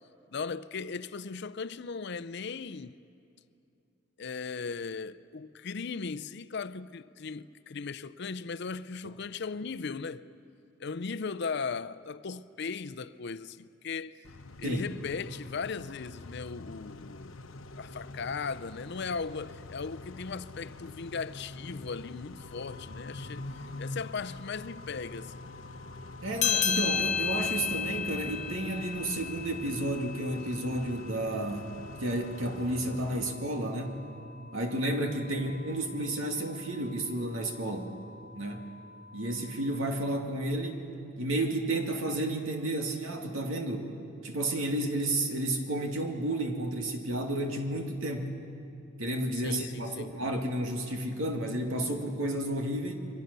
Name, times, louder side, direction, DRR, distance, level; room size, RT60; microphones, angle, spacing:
voice 1, 0.3-3.0 4.2-10.2 10.8-14.2 14.6-17.4 17.8-25.4 35.3-35.4 49.4-50.1, left 5 dB, 55° left, 0.6 m, -37 dB
Car / Idling / Accelerating revving vroom, 14.2-33.3, left 2 dB, 85° left, 1.0 m, -45 dB
sound 1, 22.3-39.8, left 3 dB, 15° right, 5.8 m, -53 dB
voice 2, 26.2-31.7 32.0-34.0 34.5-37.9 38.3-38.7 39.1-40.8 41.2-43.9 44.2-48.4 49.0-52.9, right 1 dB, 80° right, 2.5 m, -31 dB
sound 2, 26.4-31.3, left 8 dB, 35° left, 1.0 m, -32 dB
28.5 x 23.0 x 6.8 m
head